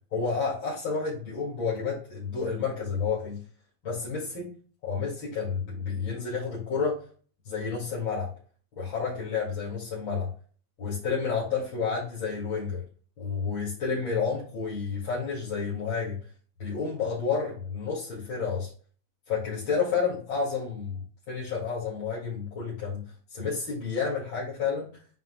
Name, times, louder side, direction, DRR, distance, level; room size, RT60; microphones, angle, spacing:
voice 1, 0.1-3.4 3.8-4.5 4.8-7.0 7.4-8.3 8.8-10.3 10.8-12.8 13.2-16.2 16.6-18.7 19.3-21.0 21.3-23.0 23.3-24.9, left 5 dB, 90° left, -7 dB, 3.0 m, -30 dB
9.1 x 5.7 x 2.2 m, 0.41 s
omnidirectional pair, 2.1 m